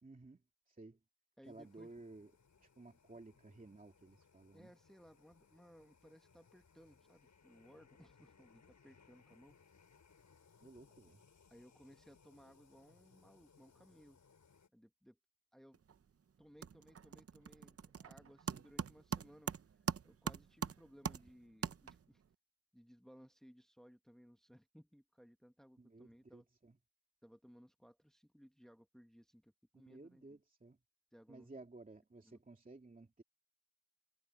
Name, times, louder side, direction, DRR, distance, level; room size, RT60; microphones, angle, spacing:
voice 1, 0.0-1.0 1.4-2.3 2.6-4.7 10.6-11.2 25.8-26.8 29.7-30.8 31.3-33.2, right 2 dB, 25° right, 2.8 m, -56 dB
sound 1, 1.4-14.7, left 5 dB, 70° left, 6.3 m, -68 dB
voice 2, 1.4-1.9 4.5-9.6 11.5-14.2 14.7-15.2 15.5-15.8 16.4-19.5 20.0-22.2 22.7-26.5 27.2-30.3 31.1-31.5 32.3-32.4, equal, ahead, 1.2 m, -62 dB
sound 2, 15.7-16.1 16.4-22.2, right 7 dB, 50° right, 0.7 m, -43 dB
wide cardioid pair, 145°, 30 cm